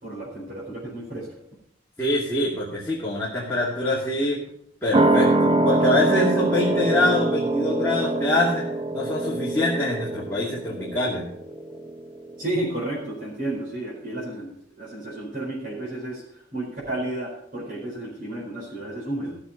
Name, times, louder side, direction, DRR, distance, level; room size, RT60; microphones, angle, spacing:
voice 1, 0.0-1.3 12.4-14.5 14.8-16.2 16.5-19.4, right 1 dB, 45° right, -5 dB, 4.4 m, -32 dB
voice 2, 2.0-4.4 4.8-8.7 8.9-11.3, left 2 dB, 10° left, -7 dB, 2.3 m, -24 dB
sound 1, 4.9-12.0 12.3-12.4, right 2 dB, 25° right, 0.6 m, -24 dB
15.0 x 6.9 x 5.6 m, 0.71 s
head